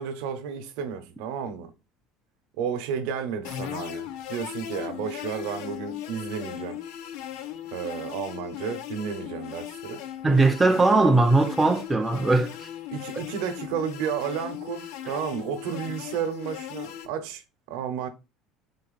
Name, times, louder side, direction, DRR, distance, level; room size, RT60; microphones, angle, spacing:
voice 1, 0.0-1.7 2.6-6.8 7.7-10.0 12.9-17.4 17.7-18.1, right 7 dB, 70° right, 0.7 m, -32 dB
sound 1, 3.4-17.1, left 11 dB, 65° left, 0.6 m, -38 dB
voice 2, 10.2-12.7, right 3 dB, 10° right, 0.3 m, -20 dB
4.0 x 3.2 x 4.0 m
cardioid pair, 175°, 0 cm